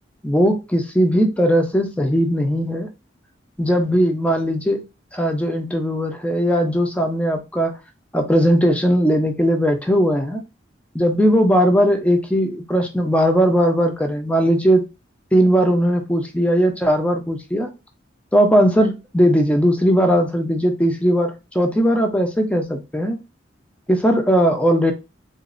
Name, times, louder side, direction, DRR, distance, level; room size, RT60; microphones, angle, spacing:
voice 1, 0.2-2.9 3.6-4.8 5.1-7.8 8.1-10.4 10.9-14.8 15.3-17.7 18.3-23.2 23.9-24.9, equal, 5° left, 4 dB, 0.6 m, -18 dB
4.0 x 2.6 x 2.5 m, 0.26 s
head